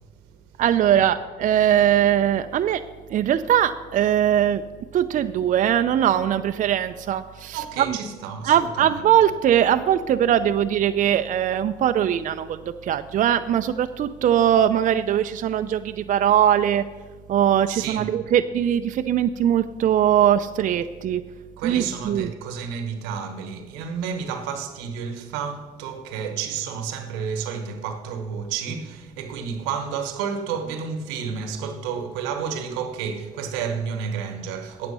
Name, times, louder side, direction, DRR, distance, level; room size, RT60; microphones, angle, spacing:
voice 1, 0.6-2.8 3.1-4.6 4.9-8.0 8.4-16.9 17.3-21.2 21.6-22.3, right 10 dB, 50° right, 0.5 m, -21 dB
voice 2, 7.5-9.0 17.7-18.1 21.6-34.9, right 6 dB, 90° right, 1.1 m, -31 dB
8.7 x 8.6 x 5.5 m
supercardioid pair, 75°, 17 cm